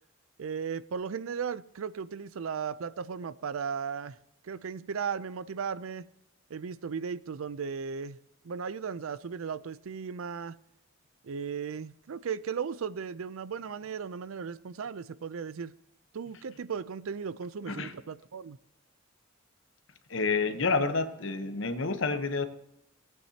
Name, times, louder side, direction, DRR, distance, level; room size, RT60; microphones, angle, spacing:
voice 1, 0.4-4.2 4.4-6.1 6.5-8.2 8.4-10.6 11.2-15.7 16.1-18.6, right 6 dB, 75° right, 0.4 m, -36 dB
voice 2, 20.1-22.4, left 4 dB, 60° left, 1.0 m, -29 dB
18.5 x 9.0 x 2.8 m
head